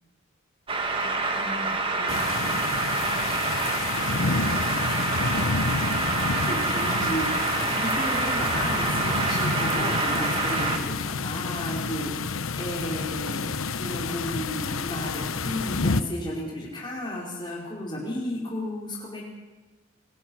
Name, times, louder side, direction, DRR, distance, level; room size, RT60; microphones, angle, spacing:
sound 1, 0.7-10.8, right 3 dB, 25° right, 2.2 m, -27 dB
voice 1, 0.9-1.7 2.0-2.6 2.9-3.2, left 1 dB, 55° left, 1 dB, 6.2 m, -41 dB
sound 2, 2.1-16.0, left 4 dB, 85° left, 1.0 m, -29 dB
voice 2, 6.5-19.2, left 1 dB, 20° left, -4 dB, 4.6 m, -33 dB
27.0 x 20.5 x 6.3 m, 1.2 s
head